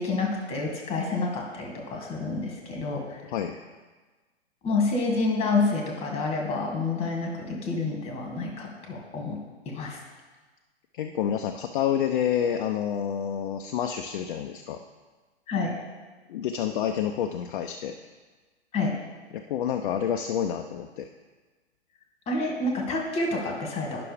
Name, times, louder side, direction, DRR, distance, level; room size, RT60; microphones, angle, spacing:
voice 1, 0.0-3.2 4.6-10.0 15.5-15.7 18.7-18.9 22.3-24.0, left 3 dB, 20° left, 0 dB, 1.9 m, -28 dB
voice 2, 10.9-14.8 16.3-18.0 19.3-21.1, left 9 dB, 50° left, 5 dB, 0.5 m, -28 dB
10.5 x 5.9 x 3.4 m, 1.3 s
figure-of-eight pair, 115°, 33 cm